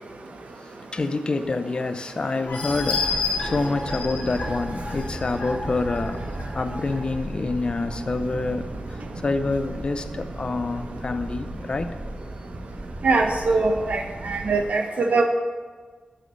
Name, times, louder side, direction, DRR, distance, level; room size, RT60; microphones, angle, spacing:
voice 1, 0.6-6.3 6.5-12.0, left 3 dB, 45° left, 9 dB, 0.5 m, -27 dB
sound 1, 2.5-6.9 7.4-7.5 7.9-8.0, left 4 dB, 80° left, 2.4 m, -31 dB
sound 2, 2.7-14.6, right 1 dB, 35° right, 1.5 m, -36 dB
voice 2, 13.0-15.2, right 3 dB, 85° right, 4 dB, 0.9 m, -22 dB
6.5 x 6.0 x 7.0 m, 1.5 s
wide cardioid pair, 110°, 2 cm